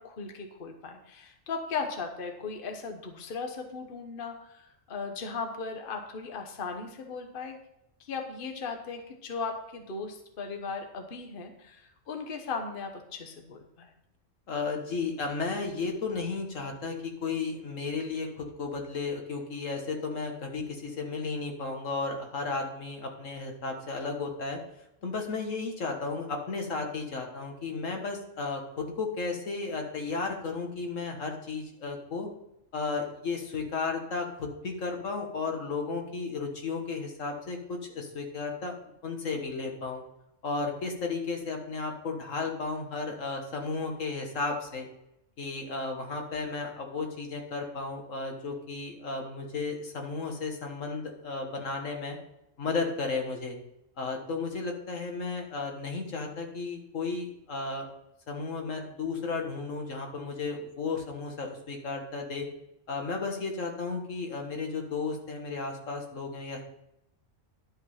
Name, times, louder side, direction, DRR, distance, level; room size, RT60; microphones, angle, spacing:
voice 1, 0.0-7.6 8.0-13.9, left 4 dB, 45° left, 5 dB, 1.2 m, -37 dB
voice 2, 14.5-24.6 25.0-32.3 32.7-38.7 39.0-40.0 40.4-44.9 45.4-52.2 52.6-53.6 54.0-57.9 58.3-62.5 62.9-66.6, left 4 dB, 80° left, 2 dB, 1.8 m, -34 dB
11.0 x 5.3 x 5.6 m, 0.83 s
omnidirectional pair, 1.3 m